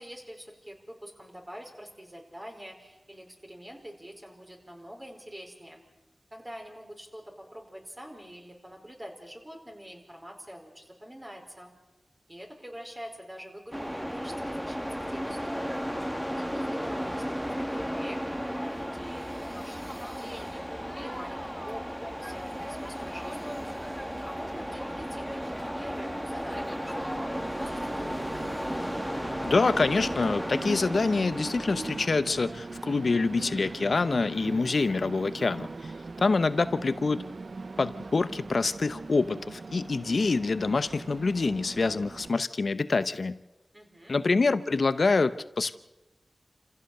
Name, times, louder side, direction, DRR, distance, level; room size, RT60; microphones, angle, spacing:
voice 1, 0.0-5.8 6.3-11.7 12.3-15.8 16.3-20.6 20.9-23.6 24.2-28.1 43.7-44.1, equal, 25° right, 1 dB, 4.7 m, -45 dB
sound 1, 13.7-32.1, equal, 5° right, 1.6 m, -34 dB
Train, 23.8-42.3, right 3 dB, 70° right, 0.6 m, -41 dB
voice 2, 29.4-35.7 36.2-37.2 37.8-43.4 44.1-45.7, left 3 dB, 70° left, 13 dB, 0.8 m, -26 dB
27.5 x 15.5 x 6.7 m, 1.0 s
cardioid pair, 45°, 0 cm